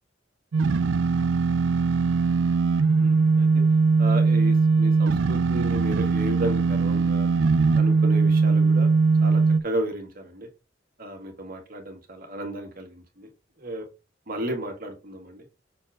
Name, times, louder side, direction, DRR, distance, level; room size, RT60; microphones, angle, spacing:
sound 1, 0.5-9.6, right 4 dB, 80° right, 0.4 m, -20 dB
voice 1, 3.0-3.6 4.0-7.3 7.7-8.9 9.2-10.5 11.0-13.3 13.6-13.9 14.3-15.5, right 1 dB, 50° right, 3 dB, 2.0 m, -33 dB
6.4 x 4.5 x 3.6 m, 0.26 s
head